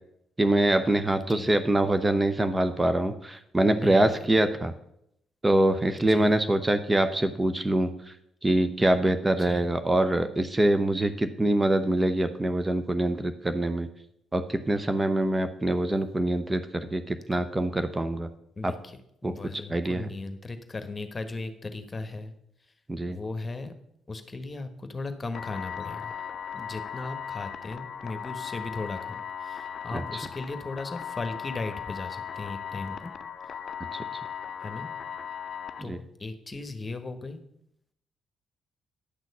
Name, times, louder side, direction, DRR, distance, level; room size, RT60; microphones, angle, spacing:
voice 1, 0.4-4.7 5.4-7.9 8.4-13.9 14.3-18.3 18.6-18.7 19.2-19.3 19.7-20.1 22.9-23.2 29.9-30.0 33.9-34.0 35.8-36.0, right 1 dB, 20° right, 9 dB, 0.9 m, -24 dB
voice 2, 1.2-1.6 3.6-4.2 6.0-6.4 9.4-9.7 18.6-22.3 23.1-23.7 24.1-26.1 26.5-33.1 34.6-34.9 35.8-37.4, left 3 dB, 30° left, 9 dB, 1.4 m, -37 dB
sound 1, 25.3-35.8, left 8 dB, 55° left, 0.5 m, -37 dB
10.5 x 6.2 x 5.5 m, 0.75 s
hypercardioid pair, 45°, 0 cm